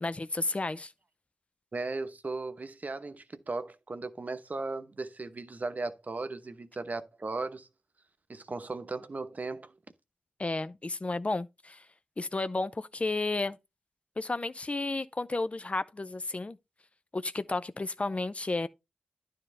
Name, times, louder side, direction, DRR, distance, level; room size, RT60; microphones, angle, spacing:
voice 1, 0.0-0.9 10.4-11.8 12.2-13.6 14.2-16.6 17.1-18.7, left 2 dB, 35° left, 0.5 m, -32 dB
voice 2, 1.7-7.7 8.3-9.7, right 3 dB, 45° right, 0.9 m, -37 dB
9.9 x 3.6 x 5.4 m
cardioid pair, 45°, 4 cm